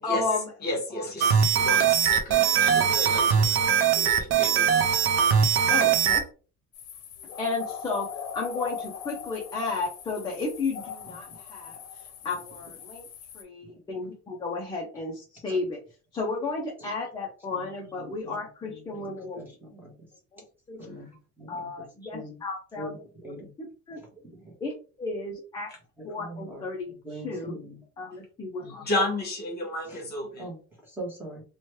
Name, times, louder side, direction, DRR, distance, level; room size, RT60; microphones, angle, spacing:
voice 1, 0.0-0.5 0.9-1.1 1.8-1.9 5.7-6.2 7.4-13.1 13.3-15.8 16.1-19.4 20.3-20.4 20.7-20.8 21.5-23.0 23.2-23.3 23.6-24.0 24.6-24.7 25.0-25.7 26.0-27.6 28.0-28.8, left 3 dB, 15° left, -2 dB, 0.4 m, -33 dB
voice 2, 0.6-4.8 28.9-30.5, left 1 dB, 30° left, 0 dB, 1.0 m, -32 dB
sound 1, 1.2-6.2, right 7 dB, 50° right, 0.4 m, -21 dB
sound 2, 6.7-13.4, left 8 dB, 55° left, 0.7 m, -40 dB
voice 3, 18.0-18.3 18.9-19.1 19.4-19.9 20.8-21.1 21.4-21.7 22.1-22.3 22.8-23.0 23.2-23.5 24.2-24.5 26.2-27.8 29.9-30.0 30.4-30.6 30.9-31.4, right 1 dB, 5° right, -3 dB, 0.9 m, -41 dB
3.0 x 2.2 x 3.0 m, 0.36 s
cardioid pair, 180°, 30 cm